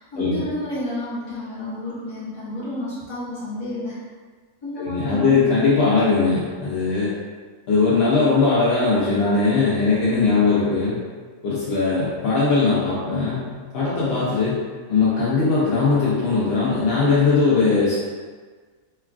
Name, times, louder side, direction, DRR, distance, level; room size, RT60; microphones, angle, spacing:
voice 1, 0.0-4.0 4.6-5.6, left 1 dB, 25° left, -13 dB, 0.7 m, -30 dB
voice 2, 4.8-7.1 7.7-11.0 11.4-13.5 13.7-14.6 14.9-18.0, left 4 dB, 65° left, -8 dB, 0.6 m, -19 dB
3.0 x 2.3 x 2.4 m, 1.5 s
omnidirectional pair, 1.5 m